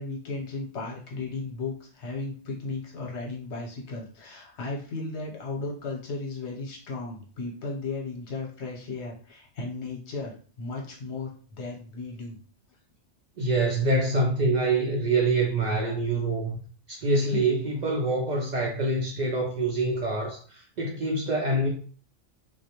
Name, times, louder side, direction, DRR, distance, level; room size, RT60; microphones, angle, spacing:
voice 1, 0.0-12.4 17.3-17.4, left 3 dB, 65° left, -1 dB, 1.0 m, -35 dB
voice 2, 13.4-16.6 16.9-21.7, right 2 dB, 65° right, -1 dB, 0.4 m, -25 dB
2.4 x 2.1 x 2.8 m, 0.42 s
omnidirectional pair, 1.3 m